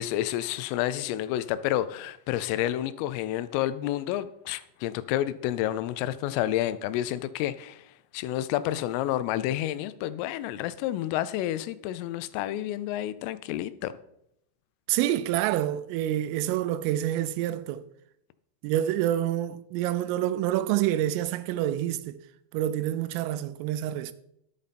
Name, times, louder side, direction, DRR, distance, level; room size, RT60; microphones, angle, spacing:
voice 1, 0.0-7.8 8.1-13.9, left 13 dB, 90° left, 3.2 m, -29 dB
voice 2, 14.9-17.8 18.6-22.2 22.5-24.1, right 12 dB, 90° right, 3.3 m, -27 dB
11.5 x 8.5 x 4.2 m
omnidirectional pair, 5.7 m